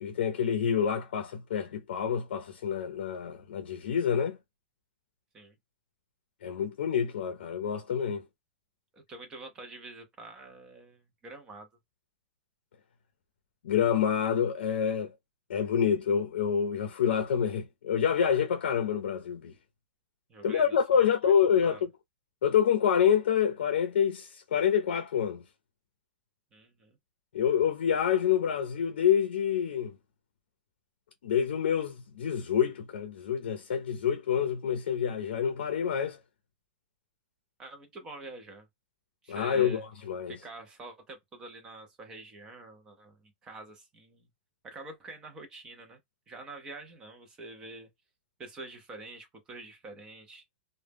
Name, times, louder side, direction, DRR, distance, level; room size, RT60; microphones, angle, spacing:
voice 1, 0.0-4.4 6.4-8.2 13.6-15.1 15.5-19.5 20.4-21.9 22.4-25.4 27.3-29.9 31.2-36.2 39.3-40.4, left 8 dB, 90° left, 0.4 m, -27 dB
voice 2, 8.9-11.7 20.3-21.3 21.6-21.8 26.5-27.0 37.6-38.7 39.2-39.9 40.3-44.3 44.6-46.0 46.3-47.9 48.4-50.4, right 2 dB, 10° right, 0.4 m, -46 dB
2.0 x 2.0 x 3.2 m
supercardioid pair, 175°, 6 cm